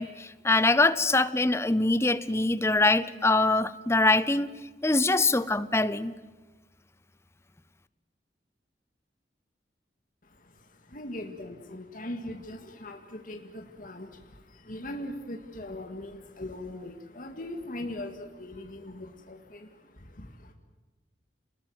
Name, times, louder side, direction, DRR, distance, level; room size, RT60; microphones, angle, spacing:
voice 1, 0.0-4.5 4.8-6.1, left 2 dB, 15° left, 15 dB, 0.8 m, -24 dB
voice 2, 10.2-20.5, left 1 dB, 50° left, 3 dB, 2.1 m, -40 dB
28.5 x 20.5 x 7.9 m, 1.3 s
head